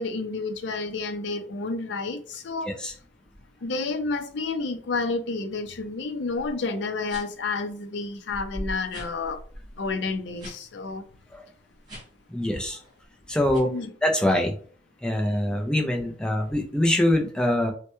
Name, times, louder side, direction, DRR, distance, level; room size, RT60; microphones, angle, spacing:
voice 1, 0.0-2.7 3.6-9.4 9.8-11.0 13.6-13.9, left 3 dB, 70° left, 0.5 m, -30 dB
sound 1, 6.3-6.5 7.0-7.5 8.0-8.1 8.3-10.6 10.9-11.1 11.8-12.3 12.7-13.0 13.5-13.6, equal, 25° right, 1.4 m, -40 dB
voice 2, 12.3-12.8 13.3-13.7 14.0-14.5 15.0-17.7, left 1 dB, 5° left, 0.5 m, -24 dB
3.2 x 2.1 x 3.0 m
head